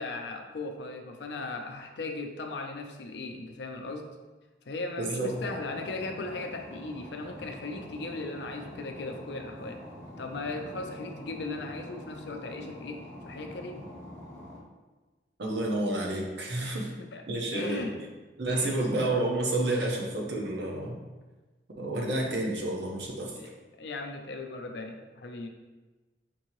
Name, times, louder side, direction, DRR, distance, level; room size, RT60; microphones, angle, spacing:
voice 1, 0.0-4.1 4.7-9.8 10.2-13.9 16.6-18.0 18.5-18.8 23.3-23.5 23.8-25.5, left 3 dB, 80° left, 4 dB, 0.5 m, -38 dB
voice 2, 5.0-5.4 15.4-16.9 17.3-17.9 18.4-21.0 21.8-23.4, right 2 dB, 80° right, -1 dB, 0.8 m, -30 dB
sound 1, 5.3-14.6, left 1 dB, 15° left, 0.7 m, -45 dB
5.3 x 2.8 x 3.0 m, 1.2 s
head